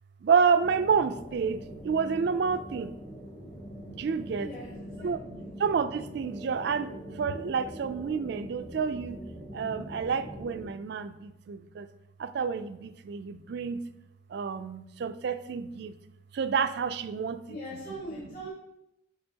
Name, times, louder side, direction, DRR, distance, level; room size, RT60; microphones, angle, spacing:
voice 1, 0.2-2.9 3.9-4.5 5.0-6.9 7.2-9.2 9.5-11.9 12.2-13.8 14.3-15.9 16.3-17.4, right 6 dB, 55° right, 10 dB, 0.3 m, -29 dB
sound 1, 0.6-10.7, equal, 15° left, 0.5 m, -43 dB
voice 2, 4.3-5.1 5.4-5.5 17.5-18.5, equal, 45° left, -7 dB, 1.6 m, -41 dB
6.8 x 5.6 x 2.8 m, 0.86 s
head